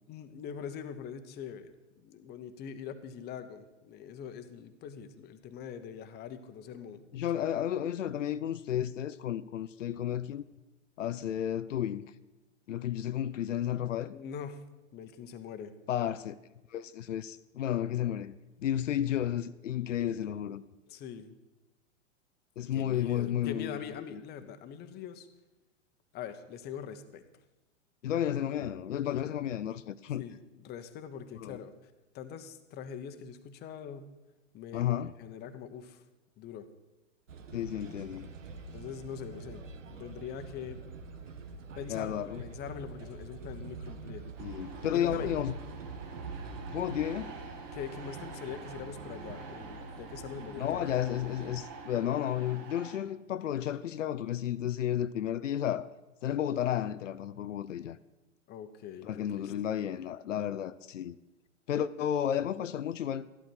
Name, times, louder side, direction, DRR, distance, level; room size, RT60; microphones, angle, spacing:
voice 1, 0.1-7.4 14.1-14.6 14.9-15.7 20.9-21.3 22.7-25.3 26.1-27.2 30.2-34.1 34.5-34.9 35.2-36.0 36.4-36.7 38.7-40.8 41.7-44.3 44.9-45.3 47.7-50.9 58.5-59.1 59.3-59.5, left 8 dB, 25° left, 1.0 m, -43 dB
voice 2, 7.1-10.4 11.0-12.0 12.7-14.1 15.9-16.4 16.7-20.6 22.6-23.8 24.1-24.2 28.0-30.2 31.4-31.6 34.7-35.1 37.5-38.3 41.9-42.4 44.4-45.5 46.7-47.4 50.6-55.9 56.2-58.0 59.0-61.2 61.7-63.3, left 10 dB, 85° left, 0.6 m, -32 dB
sound 1, 37.3-51.7, right 4 dB, 85° right, 1.4 m, -45 dB
sound 2, 44.3-53.0, right 4 dB, 45° right, 2.2 m, -47 dB
13.5 x 11.5 x 4.6 m
hypercardioid pair, 120°, 37 cm